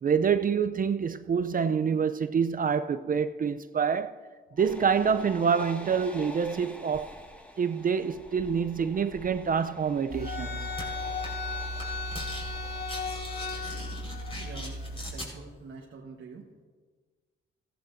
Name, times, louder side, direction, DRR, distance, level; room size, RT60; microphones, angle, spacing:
voice 1, 0.0-4.2 4.6-7.2 7.6-10.7, right 6 dB, 40° right, 0.5 m, -27 dB
sound 1, 4.6-12.8, left 1 dB, 5° left, 1.8 m, -47 dB
sound 2, 10.1-15.1, left 2 dB, 50° left, 2.4 m, -35 dB
sound 3, 10.8-10.9 11.2-11.5 11.7-12.4 12.7-15.3, left 1 dB, 25° left, 4.5 m, -41 dB
voice 2, 14.4-16.6, right 4 dB, 75° right, 1.3 m, -46 dB
15.5 x 15.0 x 2.6 m
cardioid pair, 75°, 21 cm